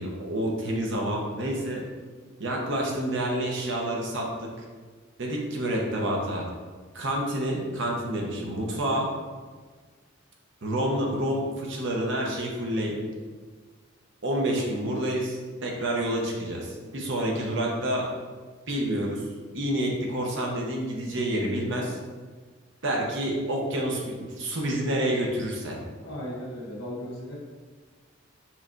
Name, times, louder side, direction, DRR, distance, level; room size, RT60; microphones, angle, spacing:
voice 1, 0.0-1.8 2.4-4.5 5.2-6.5 6.9-9.1 10.6-13.0 14.2-18.1 18.7-19.2 19.5-22.0 22.8-25.8, right 1 dB, 60° right, -1 dB, 0.8 m, -28 dB
voice 2, 26.0-27.3, equal, 75° left, -4 dB, 1.4 m, -36 dB
5.7 x 3.2 x 2.6 m, 1.5 s
head